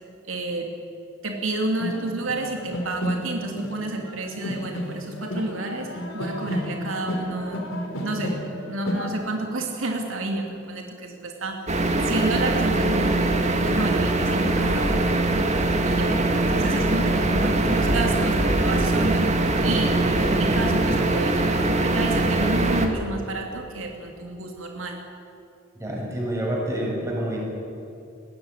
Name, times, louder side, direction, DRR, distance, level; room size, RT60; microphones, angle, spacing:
voice 1, 0.2-0.7 1.2-7.6 8.0-11.6 12.0-15.5 15.8-16.1 16.5-25.0, right 2 dB, 80° right, 2 dB, 2.7 m, -30 dB
sound 1, 1.4-1.5 1.8-9.1, equal, 85° left, 4.2 m, -31 dB
sound 2, 11.7-22.9, right 2 dB, 35° right, 2.2 m, -22 dB
voice 2, 25.8-27.4, right 1 dB, 15° right, -3 dB, 6.9 m, -28 dB
21.5 x 16.5 x 10.0 m, 2.6 s
head